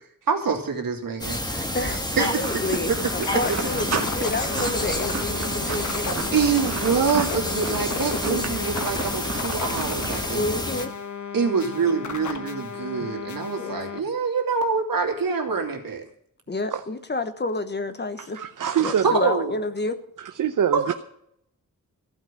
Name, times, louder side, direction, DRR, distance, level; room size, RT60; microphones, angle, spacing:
voice 1, 0.3-2.3 2.9-3.6 6.3-10.5 11.3-16.0 19.0-19.5 20.7-20.9, right 5 dB, 85° right, 3 dB, 2.8 m, -25 dB
sound 1, 1.2-10.9, left 1 dB, 10° left, 1.6 m, -29 dB
voice 2, 1.7-6.4 8.1-8.6 10.3-10.9 13.6-13.8 16.5-18.4 18.8-20.0, left 2 dB, 30° left, 11 dB, 1.1 m, -29 dB
sound 2, 2.1-10.2, right 5 dB, 50° right, 1.7 m, -34 dB
sound 3, 3.0-14.0, left 6 dB, 60° left, 1.3 m, -34 dB
voice 3, 18.3-19.2 20.4-20.9, right 9 dB, 65° right, 8 dB, 0.8 m, -25 dB
15.0 x 5.7 x 9.9 m, 0.69 s
wide cardioid pair, 165°, 33 cm